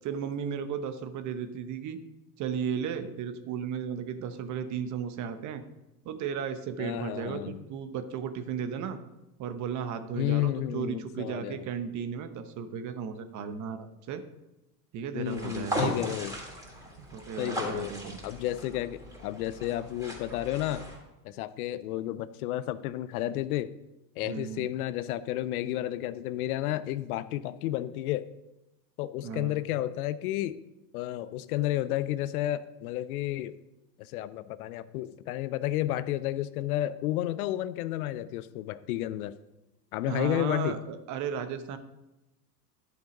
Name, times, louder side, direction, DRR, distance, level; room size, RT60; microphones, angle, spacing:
voice 1, 0.0-2.0 2.4-5.6 6.0-9.0 9.4-14.2 14.9-15.9 17.0-18.2 24.2-24.7 29.2-29.6 40.1-41.8, right 7 dB, 35° right, 10 dB, 1.0 m, -35 dB
voice 2, 6.8-7.6 10.1-11.6 15.1-16.4 17.4-17.9 18.2-20.8 21.2-23.7 24.2-28.3 29.0-30.6 30.9-33.5 34.0-39.3 39.9-40.7, left 14 dB, 60° left, 15 dB, 0.7 m, -31 dB
sound 1, 15.2-21.0, equal, 5° right, 3.2 m, -37 dB
11.0 x 6.6 x 5.2 m, 0.96 s
hypercardioid pair, 110°, 49 cm